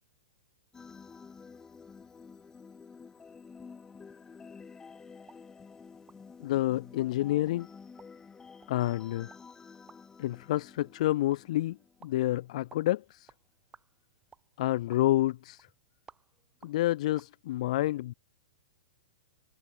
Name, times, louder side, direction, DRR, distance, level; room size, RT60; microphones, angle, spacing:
sound 1, 0.7-12.3, left 5 dB, 15° left, 1.5 m, -51 dB
sound 2, 5.2-17.3, right 6 dB, 15° right, 5.8 m, -62 dB
voice 1, 6.4-7.7 8.7-9.3 10.2-11.8 12.0-13.3 14.6-15.7 16.6-18.1, left 15 dB, 55° left, 0.6 m, -29 dB
hypercardioid pair, 115°, 4 cm